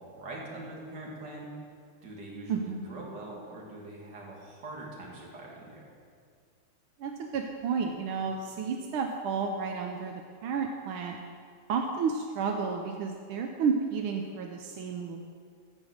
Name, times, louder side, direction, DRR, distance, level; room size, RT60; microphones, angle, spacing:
voice 1, 0.0-1.5 2.0-5.9, right 2 dB, 55° right, -3 dB, 2.6 m, -43 dB
voice 2, 2.5-2.8 7.0-10.1 10.4-11.2 11.7-15.2, right 5 dB, 85° right, 3 dB, 1.5 m, -31 dB
15.0 x 5.4 x 6.4 m, 2.2 s
omnidirectional pair, 2.3 m